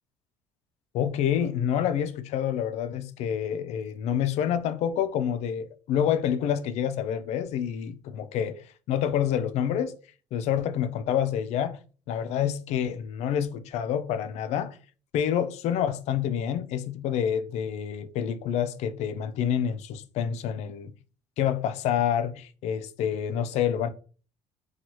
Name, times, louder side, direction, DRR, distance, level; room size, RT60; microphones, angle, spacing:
voice 1, 0.9-10.0 10.3-11.8 12.1-14.8 15.1-20.9 21.4-23.9, left 9 dB, 70° left, 0.4 m, -28 dB
2.8 x 2.3 x 3.0 m
cardioid pair, 105°, 12 cm